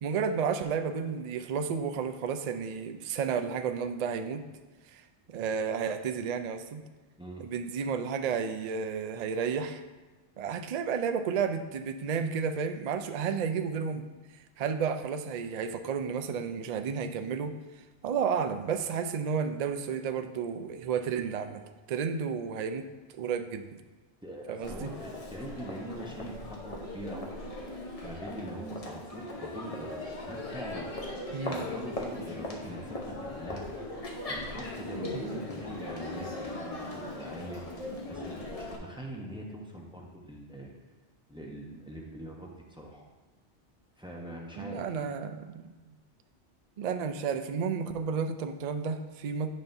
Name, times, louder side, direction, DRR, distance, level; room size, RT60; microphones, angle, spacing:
voice 1, 0.0-4.4 4.9-5.0 5.3-6.8 7.4-9.8 10.4-14.1 14.6-17.6 18.0-21.6 21.9-22.9 23.1-23.8 24.5-24.9 31.3-31.6 35.1-35.3 44.6-45.7 46.8-49.5, right 6 dB, 65° right, 8 dB, 0.4 m, -32 dB
voice 2, 24.2-27.6 28.0-30.9 31.4-33.6 34.3-40.7 41.3-43.0 44.0-44.8, right 1 dB, 5° right, -2 dB, 0.8 m, -43 dB
Crowd, 24.6-38.8, left 1 dB, 35° left, 0.9 m, -39 dB
9.3 x 5.5 x 2.6 m, 1.3 s
omnidirectional pair, 1.2 m